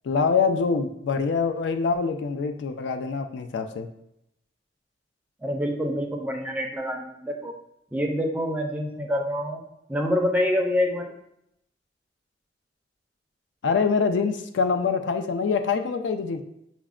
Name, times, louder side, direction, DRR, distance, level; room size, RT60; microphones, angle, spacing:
voice 1, 0.0-3.9 13.6-16.4, left 5 dB, 75° left, 7 dB, 0.3 m, -25 dB
voice 2, 5.4-7.5 7.9-9.6 9.9-11.1, left 1 dB, 10° right, 2 dB, 0.4 m, -26 dB
5.7 x 2.1 x 2.4 m, 0.79 s
head